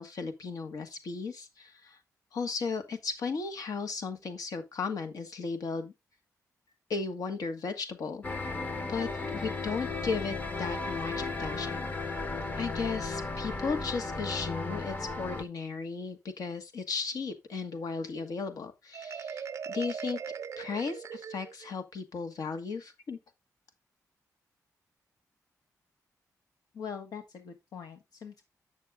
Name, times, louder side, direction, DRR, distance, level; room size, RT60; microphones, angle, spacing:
voice 1, 0.0-2.0 2.3-5.9 6.9-8.2 8.9-11.8 12.5-20.2 20.6-23.2, left 4 dB, 70° left, 1.4 m, -35 dB
sound 1, 8.2-15.4, left 3 dB, 25° left, 0.8 m, -35 dB
Marimba xylophone, 18.9-21.7, right 7 dB, 55° right, 0.5 m, -39 dB
voice 2, 26.7-28.4, left 6 dB, 90° left, 1.2 m, -42 dB
8.4 x 6.3 x 3.5 m
wide cardioid pair, 160°, 6 cm